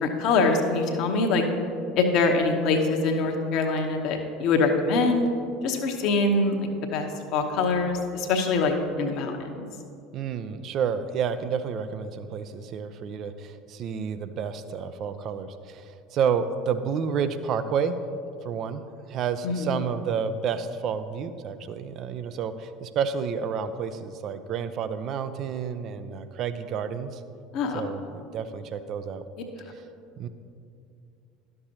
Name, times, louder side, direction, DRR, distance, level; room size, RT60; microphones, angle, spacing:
voice 1, 0.0-1.4 2.0-5.3 5.6-6.6 6.9-7.1 7.3-9.6 19.4-19.7 27.5-27.8, left 3 dB, 55° left, 3 dB, 0.9 m, -24 dB
voice 2, 10.1-18.0 18.4-18.8 19.1-27.2 27.7-29.2 30.2-30.3, right 7 dB, 50° right, 12 dB, 0.5 m, -30 dB
11.5 x 6.6 x 2.9 m, 2.5 s
figure-of-eight pair, 70°, 0 cm